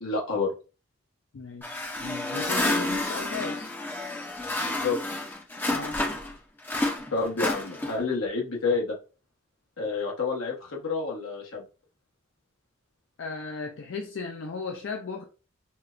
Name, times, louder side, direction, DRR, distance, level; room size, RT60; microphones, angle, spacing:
voice 1, 0.0-0.5 4.6-5.0 7.1-8.9 9.8-11.6, left 4 dB, 90° left, 1.1 m, -29 dB
voice 2, 1.3-3.7 5.6-6.1 13.2-15.2, left 4 dB, 70° left, 0.4 m, -36 dB
sound 1, 1.6-6.3 6.6-8.1, left 2 dB, 10° left, 0.5 m, -30 dB
4.3 x 2.2 x 2.4 m
head